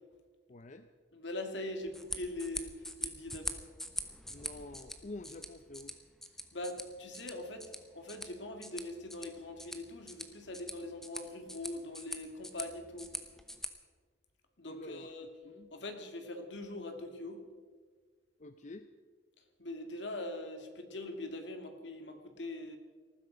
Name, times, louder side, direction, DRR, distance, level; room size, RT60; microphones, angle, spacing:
voice 1, 0.5-0.9 4.3-6.0 14.7-15.1 15.4-15.7 18.4-18.9, left 2 dB, 40° left, 9 dB, 0.6 m, -48 dB
voice 2, 1.1-3.6 6.5-13.1 14.6-15.3 15.7-17.5 19.6-22.8, left 2 dB, 75° left, 5 dB, 2.2 m, -42 dB
sound 1, 1.8-13.7, left 1 dB, ahead, 1.0 m, -44 dB
19.0 x 14.5 x 5.1 m, 1.5 s
head